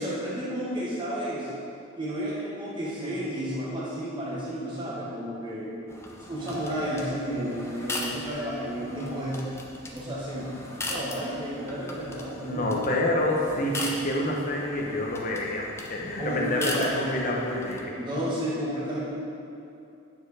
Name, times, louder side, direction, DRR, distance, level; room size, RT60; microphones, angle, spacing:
voice 1, 0.0-1.5 2.0-5.7 6.2-9.5 9.9-10.5 10.8-12.6 16.2-17.3 18.0-19.0, equal, 20° right, -7 dB, 1.6 m, -32 dB
sound 1, 5.9-17.8, left 2 dB, 10° left, 0.5 m, -39 dB
voice 2, 12.4-17.9, left 1 dB, 40° left, -2 dB, 1.0 m, -28 dB
9.4 x 4.5 x 4.9 m, 2.7 s
head